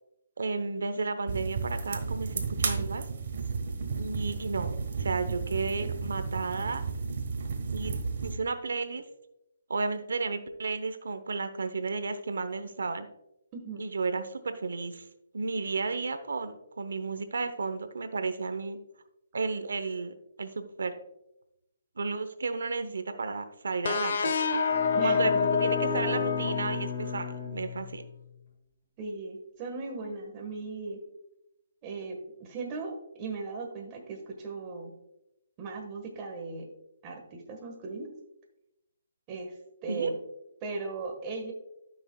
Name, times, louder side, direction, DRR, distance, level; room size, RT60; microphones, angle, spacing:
voice 1, 0.4-3.1 4.0-6.8 7.7-9.0 9.7-13.1 13.8-15.1 15.3-18.8 19.3-21.0 22.0-24.7 25.0-28.1 39.9-40.1, right 4 dB, 85° right, 9 dB, 0.7 m, -33 dB
sound 1, 1.3-8.3, right 5 dB, 55° right, 1.3 m, -33 dB
voice 2, 13.5-13.8 24.9-25.4 29.0-31.0 31.8-34.9 35.6-36.7 37.0-38.1 39.3-39.5 39.8-40.2 40.6-41.5, right 4 dB, 20° right, 1 dB, 1.4 m, -37 dB
sound 2, 23.8-27.4, left 5 dB, 60° left, 0.6 m, -28 dB
Bowed string instrument, 24.7-28.3, left 9 dB, 30° left, 2.4 m, -37 dB
13.0 x 6.2 x 2.3 m, 0.85 s
hypercardioid pair, 165°, 0 cm